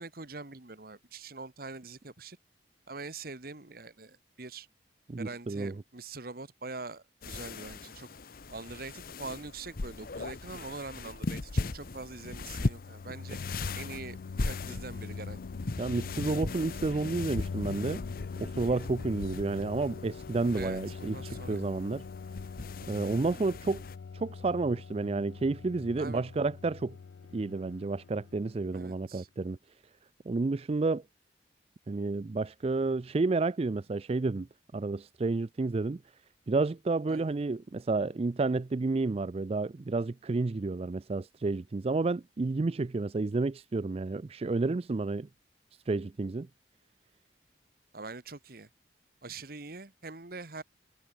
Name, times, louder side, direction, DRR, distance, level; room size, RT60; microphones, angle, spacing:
voice 1, 0.0-2.4 2.9-4.7 5.2-8.1 8.5-13.4 13.7-15.4 20.5-21.7 26.0-26.3 28.7-29.3 37.1-37.3 47.9-48.7 49.2-50.6, right 3 dB, 55° right, 1.6 m, -44 dB
voice 2, 5.1-5.7 15.8-18.0 18.4-22.1 22.9-23.8 24.1-27.0 27.3-29.6 30.3-31.0 31.9-34.5 34.7-36.0 36.5-45.3 45.9-46.5, right 3 dB, 35° right, 0.4 m, -30 dB
sound 1, 7.2-24.0, left 3 dB, 55° left, 0.8 m, -39 dB
sound 2, 12.1-28.8, left 5 dB, 90° left, 0.4 m, -43 dB
head